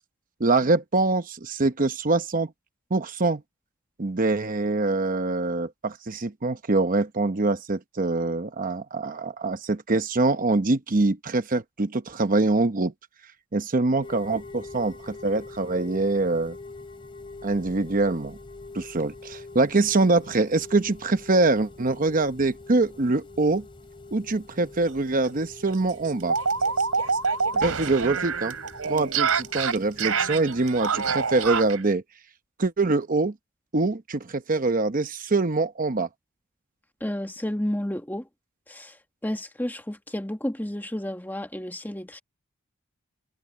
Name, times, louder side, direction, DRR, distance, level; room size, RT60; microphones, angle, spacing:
voice 1, 0.4-2.5 2.9-3.4 4.0-12.9 13.5-16.6 17.4-18.4 18.7-23.6 24.1-26.4 27.5-28.6 28.8-32.0 32.6-33.3 33.7-36.1, right 3 dB, 40° right, 0.9 m, -24 dB
sound 1, 14.0-31.7, left 3 dB, 25° left, 3.3 m, -45 dB
sound 2, 24.8-25.0 25.2-25.3 25.7-31.8, right 5 dB, 85° right, 3.2 m, -26 dB
voice 2, 37.0-38.3 38.7-38.9 39.2-42.2, left 1 dB, 10° left, 1.4 m, -31 dB
head